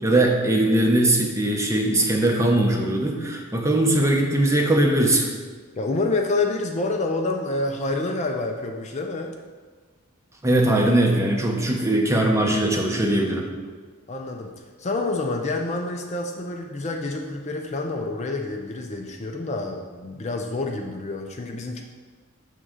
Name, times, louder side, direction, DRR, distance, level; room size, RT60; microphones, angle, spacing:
voice 1, 0.0-5.3 10.4-13.5, right 1 dB, 15° right, 1 dB, 0.7 m, -20 dB
voice 2, 5.8-9.3 14.1-14.5 14.8-21.8, left 2 dB, 30° left, 2 dB, 0.5 m, -28 dB
6.8 x 3.7 x 6.2 m, 1.4 s
head